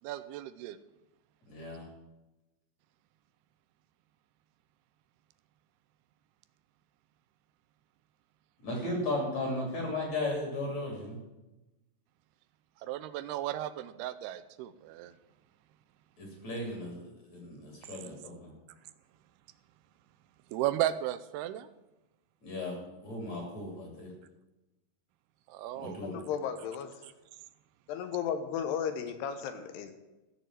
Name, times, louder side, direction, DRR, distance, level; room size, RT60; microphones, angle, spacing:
voice 1, 0.0-0.8 12.8-15.1 20.5-21.7 25.5-26.0, right 13 dB, 85° right, 13 dB, 2.5 m, -34 dB
voice 2, 1.5-1.9 8.6-11.2 16.2-17.0 17.3-18.5 22.4-24.1 25.7-26.2, left 2 dB, 45° left, -1 dB, 4.1 m, -36 dB
voice 3, 26.0-27.0 27.9-29.9, left 8 dB, 85° left, 8 dB, 3.1 m, -34 dB
14.5 x 6.9 x 7.6 m, 1.0 s
omnidirectional pair, 4.7 m